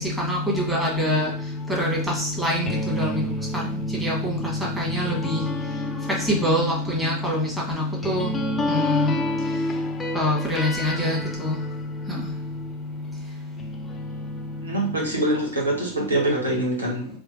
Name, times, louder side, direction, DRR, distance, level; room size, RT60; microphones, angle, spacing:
sound 1, 0.5-13.1 13.6-16.5, left 1 dB, 15° left, 0.4 m, -32 dB
voice 1, 0.7-1.3 1.8-3.1 4.0-4.4 4.8-5.4 6.3-7.5 8.0-8.3 8.7-9.1 10.1-11.5, left 1 dB, 5° right, -3 dB, 1.2 m, -24 dB
voice 2, 14.6-17.1, right 1 dB, 75° right, -1 dB, 1.0 m, -24 dB
4.7 x 2.4 x 2.6 m, 0.43 s
figure-of-eight pair, 90°, 0 cm